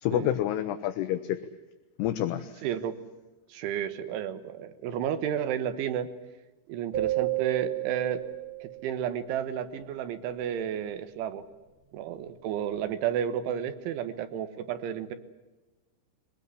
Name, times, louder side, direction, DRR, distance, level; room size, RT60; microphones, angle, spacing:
voice 1, 0.0-1.4 2.0-2.6, left 12 dB, 75° left, 8 dB, 2.6 m, -28 dB
voice 2, 2.6-3.0 3.5-6.1 6.7-8.3 8.6-11.4 11.9-15.1, right 9 dB, 85° right, 10 dB, 3.7 m, -32 dB
sound 1, 6.9-9.2, right 17 dB, 45° right, 4.2 m, -32 dB
22.5 x 19.0 x 9.7 m, 1.1 s
omnidirectional pair, 5.4 m